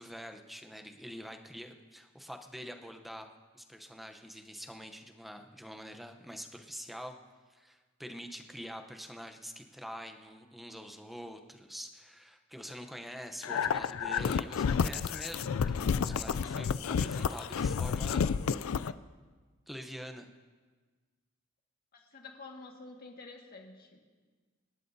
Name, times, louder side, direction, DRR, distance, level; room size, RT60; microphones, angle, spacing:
voice 1, 0.0-3.3 3.5-7.2 7.5-18.3 19.7-20.3, equal, ahead, 5 dB, 0.8 m, -45 dB
sound 1, 13.4-18.9, left 6 dB, 85° left, 0.4 m, -30 dB
voice 2, 21.9-24.1, left 3 dB, 50° left, 1 dB, 1.8 m, -49 dB
26.0 x 11.5 x 2.7 m, 1.4 s
head